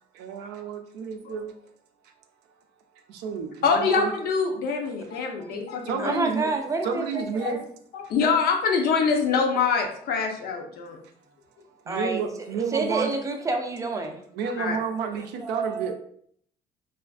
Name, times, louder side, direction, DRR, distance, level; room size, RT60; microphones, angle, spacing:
voice 1, 0.0-1.6 2.0-2.1 3.1-4.1 5.5-6.5 6.8-7.6 11.7-13.1 14.3-15.9, right 6 dB, 90° right, 5 dB, 0.4 m, -31 dB
voice 2, 3.6-6.1 7.4-7.5 7.9-11.0 14.6-14.8, left 5 dB, 65° left, 2 dB, 0.6 m, -24 dB
voice 3, 6.0-7.6 11.9-12.2 12.7-14.2 14.5-14.6 15.4-15.9, right 3 dB, 20° right, 3 dB, 0.4 m, -28 dB
2.4 x 2.4 x 2.3 m, 0.63 s
cardioid pair, 110°, 17 cm